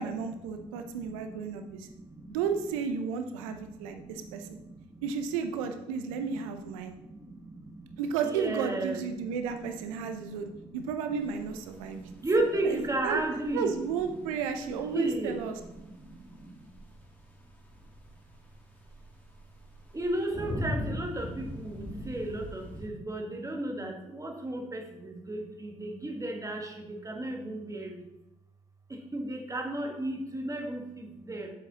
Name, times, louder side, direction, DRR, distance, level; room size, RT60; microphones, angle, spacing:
voice 1, 0.0-1.9 2.3-4.6 5.0-6.9 8.0-12.1 12.6-13.2 13.5-15.6, right 6 dB, 75° right, 7 dB, 0.7 m, -33 dB
voice 2, 0.5-2.4 3.5-5.0 6.1-6.2 6.8-9.0 10.0-10.8 11.8-13.7 14.9-15.4 15.7-16.7 19.9-28.1 28.9-31.5, right 1 dB, 20° right, 2 dB, 1.6 m, -35 dB
sound 1, 11.2-22.9, left 1 dB, 10° left, 1.7 m, -41 dB
7.8 x 7.2 x 3.0 m, 0.93 s
figure-of-eight pair, 45°, 17 cm